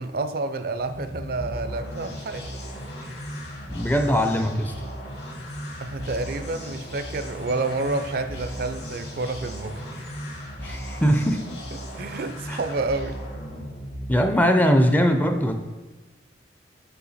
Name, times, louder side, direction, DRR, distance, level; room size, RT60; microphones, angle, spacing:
voice 1, 0.0-2.5 3.0-3.1 5.8-9.9 11.7-13.2, right 3 dB, 55° right, 10 dB, 0.4 m, -29 dB
sound 1, 0.7-14.5, equal, 65° left, 2.0 m, -36 dB
voice 2, 3.6-4.7 10.6-11.4 12.5-12.6 14.1-15.5, equal, 10° left, 6 dB, 0.4 m, -21 dB
6.3 x 5.7 x 4.1 m, 1.2 s
head